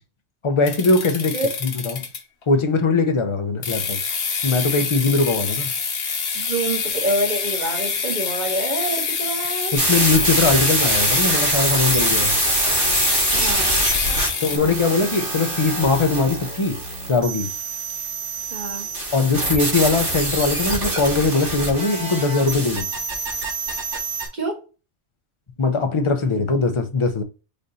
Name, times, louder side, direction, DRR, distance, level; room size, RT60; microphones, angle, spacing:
voice 1, 0.4-1.4 1.6-2.1 2.5-4.0 4.4-5.7 9.7-12.4 14.4-16.8 17.1-17.5 19.1-22.9 25.6-27.2, left 3 dB, 35° left, 0.5 m, -21 dB
sound 1, 0.7-2.4 3.6-14.6, left 5 dB, 60° left, 1.1 m, -26 dB
voice 2, 6.3-9.7 13.3-13.9 18.5-18.9 24.3-24.6, right 2 dB, 40° right, 1.5 m, -26 dB
sound 2, 9.8-24.3, right 2 dB, 85° right, 2.6 m, -24 dB
5.0 x 2.6 x 4.0 m
omnidirectional pair, 1.2 m